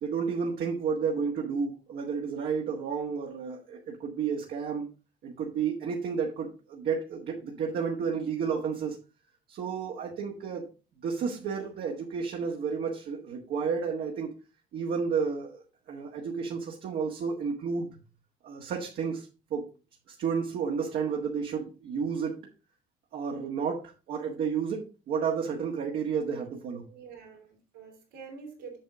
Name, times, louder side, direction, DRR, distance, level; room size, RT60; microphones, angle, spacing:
voice 1, 0.0-4.9 5.2-9.0 9.5-10.7 11.0-14.3 14.7-17.9 18.4-19.7 20.1-22.4 23.1-26.9, right 6 dB, 65° right, -1 dB, 1.7 m, -31 dB
voice 2, 26.9-28.8, right 5 dB, 85° right, -2 dB, 3.7 m, -46 dB
7.6 x 6.6 x 3.6 m, 0.32 s
cardioid pair, 110°, 17 cm